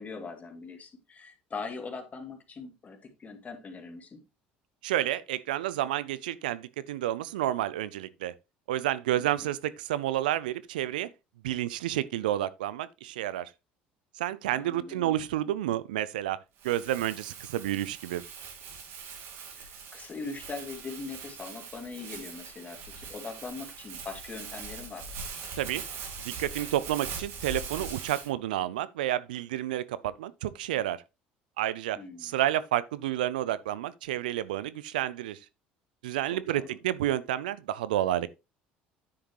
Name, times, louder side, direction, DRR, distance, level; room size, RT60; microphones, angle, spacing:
voice 1, 0.0-4.2 9.2-9.5 14.5-15.1 19.5-25.1 32.0-32.4 36.2-36.7, left 4 dB, 35° left, 2.4 m, -41 dB
voice 2, 4.8-8.3 8.7-11.1 11.4-13.5 14.1-18.2 25.6-25.8 26.2-31.0 31.6-35.4 36.0-38.3, right 13 dB, 85° right, 0.5 m, -30 dB
Crumpling crinkling, 16.6-28.3, right 5 dB, 65° right, 2.3 m, -42 dB
9.6 x 6.4 x 3.1 m
hypercardioid pair, 75°, 5 cm